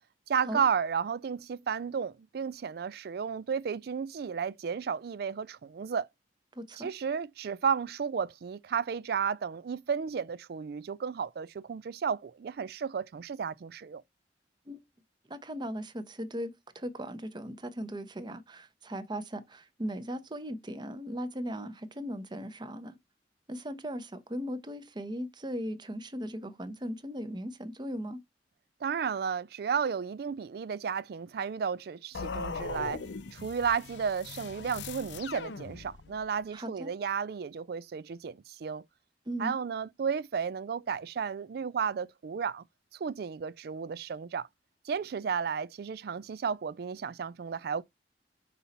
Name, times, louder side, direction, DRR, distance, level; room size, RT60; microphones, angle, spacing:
voice 1, 0.3-6.1 6.8-14.0 28.8-33.0 33.3-38.8 39.4-42.6 42.9-44.5 44.8-47.8, right 6 dB, 60° right, 0.4 m, -33 dB
voice 2, 6.6-6.9 14.7-14.8 15.3-22.9 23.5-28.2 36.5-36.9 39.3-39.5, equal, 25° right, 0.8 m, -38 dB
sound 1, 32.1-36.3, left 5 dB, 85° left, 0.6 m, -40 dB
5.5 x 4.1 x 4.2 m
head